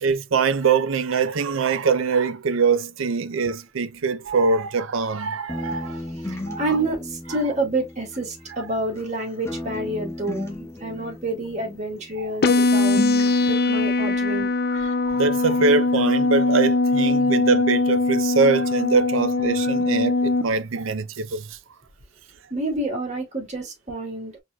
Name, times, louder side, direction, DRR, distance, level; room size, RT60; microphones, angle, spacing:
voice 1, 0.0-6.0 6.5-6.8 12.2-12.3 14.8-21.5, right 5 dB, 70° right, 0.5 m, -23 dB
sound 1, 5.5-9.2 9.5-12.2 12.5-13.5, left 1 dB, 15° left, 1.3 m, -35 dB
voice 2, 6.1-13.0 13.4-14.9 19.6-19.7 22.5-24.3, right 2 dB, 35° right, 2.2 m, -28 dB
sound 2, 12.4-20.4, left 2 dB, 50° left, 0.5 m, -21 dB
4.6 x 4.0 x 2.3 m
head